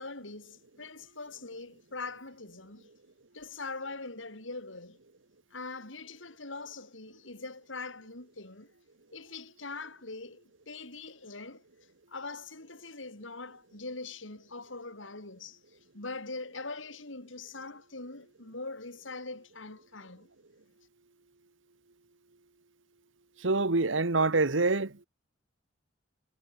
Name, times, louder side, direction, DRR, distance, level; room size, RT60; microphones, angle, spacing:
voice 1, 0.0-2.9 3.3-5.0 5.5-8.7 9.1-11.6 12.1-20.3, left 3 dB, 85° left, 4.9 m, -42 dB
voice 2, 23.4-25.0, right 3 dB, 80° right, 1.5 m, -26 dB
head